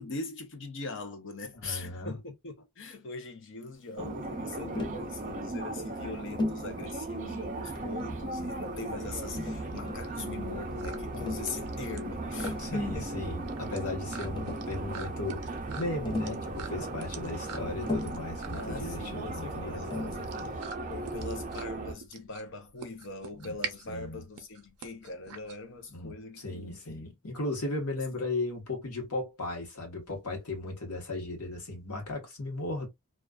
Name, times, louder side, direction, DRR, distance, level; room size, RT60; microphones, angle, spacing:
voice 1, 0.0-13.1 18.6-20.6 20.9-27.1 28.0-28.1, left 3 dB, 55° left, 0.6 m, -41 dB
voice 2, 1.6-2.1 12.6-20.2 23.4-23.5 23.9-24.2 25.9-32.9, left 2 dB, 80° left, 1.1 m, -36 dB
sound 1, 4.0-21.9, right 2 dB, 35° right, 0.5 m, -37 dB
Tap, 4.7-5.1 6.4-6.7 7.8-8.3 9.4-10.1 11.1-11.5 12.2-12.7 13.9-14.0 14.2-14.8 16.1-16.5 17.8-18.3 19.9-20.2, left 2 dB, 20° left, 0.4 m, -35 dB
sound 2, 8.5-26.1, right 7 dB, 85° right, 0.5 m, -45 dB
2.3 x 2.3 x 2.3 m
head